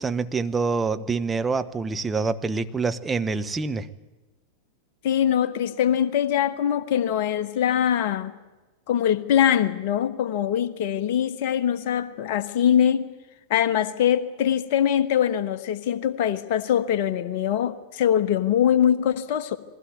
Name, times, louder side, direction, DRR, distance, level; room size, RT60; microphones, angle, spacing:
voice 1, 0.0-3.9, right 4 dB, 15° right, 9 dB, 0.9 m, -26 dB
voice 2, 5.0-8.3 8.9-13.1 13.5-19.6, left 9 dB, 50° left, 13 dB, 1.2 m, -23 dB
21.0 x 16.0 x 9.2 m, 1.2 s
figure-of-eight pair, 90°, 0 cm